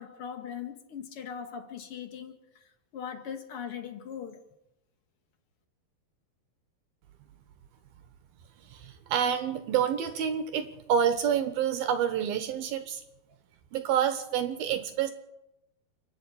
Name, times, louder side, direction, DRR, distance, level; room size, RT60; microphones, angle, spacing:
voice 1, 0.0-2.6 2.9-4.4, left 8 dB, 45° left, 1.9 m, -40 dB
voice 2, 8.8-13.0 13.7-15.1, right 8 dB, 70° right, 2.8 m, -28 dB
28.0 x 11.0 x 8.5 m
omnidirectional pair, 4.7 m